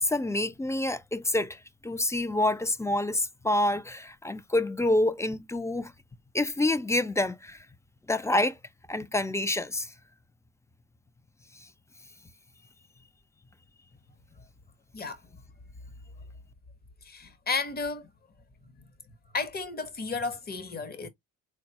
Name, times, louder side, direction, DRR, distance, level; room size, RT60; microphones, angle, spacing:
voice 1, 0.0-5.9 6.3-7.7 8.1-8.6 8.9-9.9, left 1 dB, 10° left, 0.4 m, -27 dB
voice 2, 17.0-18.1 18.7-18.9 19.3-21.1, left 4 dB, 30° left, 0.9 m, -33 dB
3.9 x 2.2 x 2.8 m
cardioid pair, 90°, 30 cm